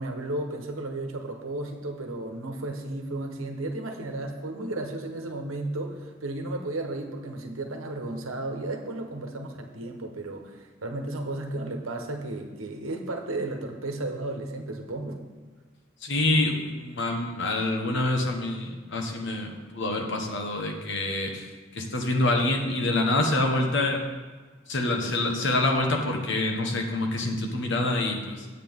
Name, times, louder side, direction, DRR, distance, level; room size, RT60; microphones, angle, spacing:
voice 1, 0.0-15.2, right 2 dB, 80° right, 4 dB, 1.2 m, -34 dB
voice 2, 16.0-24.0 24.7-28.5, left 2 dB, 60° left, 3 dB, 1.3 m, -26 dB
9.8 x 8.4 x 3.7 m, 1.4 s
head